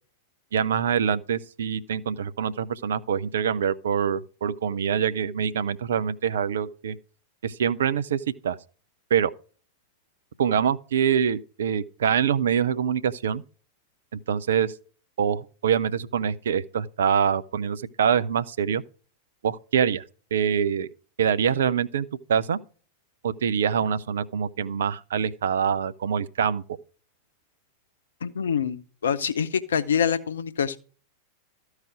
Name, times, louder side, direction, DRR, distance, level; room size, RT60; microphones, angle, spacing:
voice 1, 0.5-7.0 7.4-8.6 9.1-9.3 10.4-13.4 14.3-14.7 15.2-18.8 19.4-20.0 20.3-20.9 21.2-22.6 23.2-26.6, right 7 dB, 65° right, 0.5 m, -25 dB
voice 2, 28.2-30.8, left 7 dB, 65° left, 0.7 m, -25 dB
13.5 x 4.9 x 4.9 m
figure-of-eight pair, 90°, 0 cm